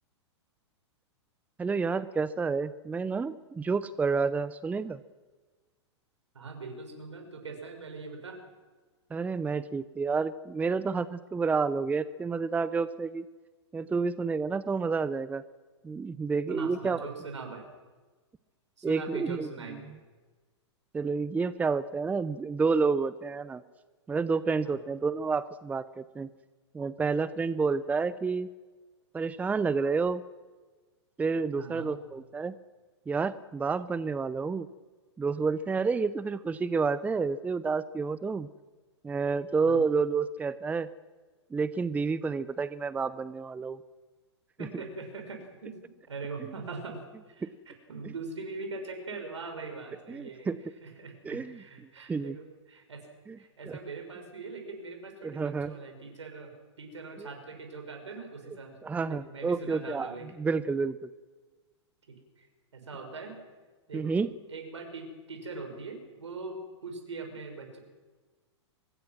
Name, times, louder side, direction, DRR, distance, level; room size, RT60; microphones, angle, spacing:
voice 1, 1.6-5.0 9.1-13.2 13.7-15.4 15.8-17.1 18.8-19.5 20.9-23.6 24.1-26.3 26.7-28.5 29.1-30.2 31.2-32.5 33.1-34.7 35.2-38.5 39.0-40.9 41.5-43.8 47.4-47.5 48.0-48.1 50.1-50.6 51.2-51.6 52.1-52.4 53.3-53.4 53.6-53.8 55.2-55.7 57.2-57.3 58.8-61.0 63.9-64.3, right 4 dB, 10° right, 16 dB, 0.6 m, -29 dB
voice 2, 6.3-8.4 16.5-17.6 18.8-19.9 24.6-24.8 31.6-31.9 39.6-39.8 44.6-45.7 46.1-50.5 50.8-53.1 53.4-56.5 56.8-58.7 59.0-60.3 62.4-62.5 62.7-63.3 63.9-64.2 64.5-67.8, right 4 dB, 80° right, 4 dB, 6.4 m, -41 dB
25.0 x 21.0 x 6.2 m, 1.3 s
figure-of-eight pair, 110°, 15 cm